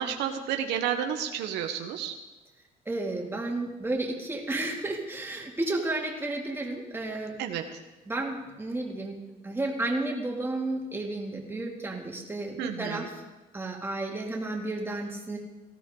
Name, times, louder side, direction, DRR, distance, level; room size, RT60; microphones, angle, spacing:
voice 1, 0.0-2.1 7.4-7.8 12.6-13.1, right 9 dB, 85° right, 5 dB, 1.2 m, -31 dB
voice 2, 2.9-7.3 8.1-9.2 9.4-13.1 13.5-15.4, right 2 dB, 15° right, 0 dB, 2.6 m, -32 dB
18.0 x 13.5 x 3.9 m, 1.1 s
cardioid pair, 110°, 17 cm